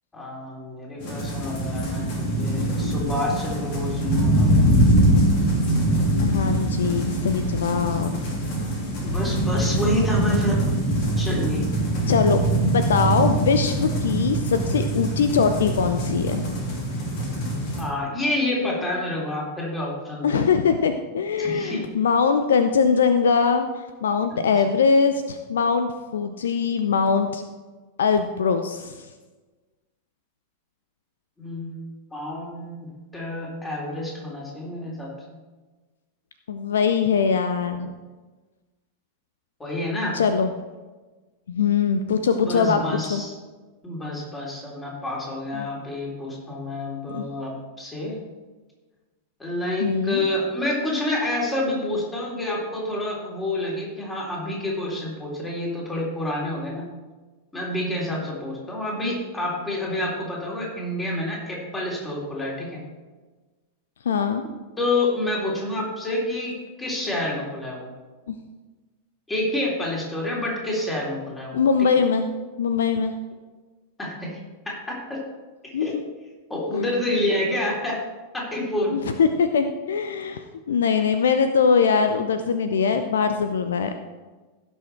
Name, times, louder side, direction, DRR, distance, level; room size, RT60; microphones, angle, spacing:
voice 1, 0.1-4.7 9.0-10.7 11.2-11.7 17.8-20.4 21.4-21.9 24.3-24.4 31.4-31.8 32.1-32.9 33.1-35.1 39.6-40.2 42.2-43.3 43.8-48.2 49.4-56.9 57.5-62.8 64.8-67.9 69.3-71.9 74.0-74.4 74.7-75.2 75.6-75.9 76.5-78.0 78.3-79.2, left 1 dB, 10° left, -3 dB, 3.6 m, -28 dB
sound 1, 1.0-17.8, right 1 dB, 50° left, 3.0 m, -23 dB
voice 2, 6.2-8.4 12.1-16.5 20.2-23.7 24.0-27.4 28.0-28.9 36.5-37.9 40.1-40.5 41.5-42.8 43.1-43.2 45.5-45.7 47.1-47.2 49.8-50.2 64.0-64.4 71.5-72.3 72.6-73.1 75.7-76.0 76.7-76.9 78.9-83.9, left 6 dB, 65° left, 9 dB, 0.6 m, -22 dB
16.5 x 6.3 x 4.4 m, 1.3 s
figure-of-eight pair, 90°, 0 cm